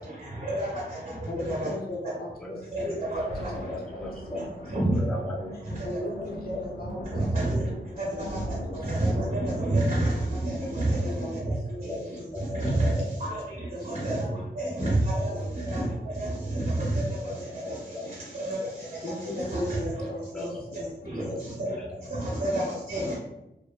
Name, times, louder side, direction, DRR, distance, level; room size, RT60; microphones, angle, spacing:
voice 1, 0.0-1.7 2.7-3.5 4.6-5.0 5.6-5.9 6.9-7.7 8.0-11.5 11.8-11.9 12.5-12.9 13.2-14.3 14.5-17.2 17.6-19.9 21.0-21.8 22.1-23.2, right 1 dB, 35° right, -5 dB, 0.7 m, -29 dB
voice 2, 1.3-3.7 4.0-4.5 5.8-7.1 7.9-8.9 11.0-11.3 11.7-12.3 13.7-14.1 15.3-15.6 19.0-20.9 21.3-21.4, left 1 dB, 55° left, -1 dB, 0.5 m, -38 dB
voice 3, 2.4-2.9 3.5-4.5 4.9-5.6 6.0-6.1 7.6-7.7 11.8-13.1 14.1-14.4 15.2-15.8 17.2-18.1 18.6-18.7 20.0-20.5 21.1-22.0 22.6-22.8 23.0-23.2, left 1 dB, 5° left, -2 dB, 0.4 m, -38 dB
Thunder, 2.8-13.8 14.4-14.5, equal, 75° left, 0.9 m, -41 dB
2.7 x 2.3 x 2.3 m, 0.92 s
wide cardioid pair, 95°, 18 cm